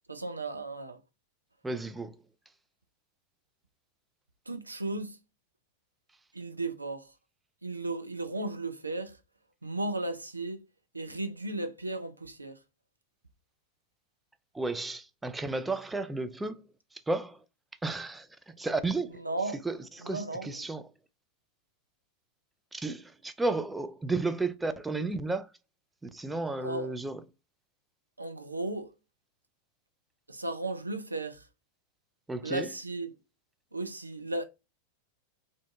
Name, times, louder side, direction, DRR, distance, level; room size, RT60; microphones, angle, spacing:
voice 1, 0.1-1.0 4.5-5.2 6.3-7.1 7.6-9.2 9.6-10.7 10.9-12.6 19.1-19.6 20.0-20.7 26.6-26.9 28.2-28.9 30.3-31.5 32.4-33.1 33.7-34.4, right 2 dB, 80° right, 0.4 m, -35 dB
voice 2, 1.6-2.2 14.5-16.7 16.9-17.4 17.8-19.3 19.7-20.8 22.7-25.5 26.0-27.2 32.3-32.7, right 3 dB, 10° right, 0.3 m, -33 dB
2.5 x 2.5 x 3.4 m
figure-of-eight pair, 90°, 0 cm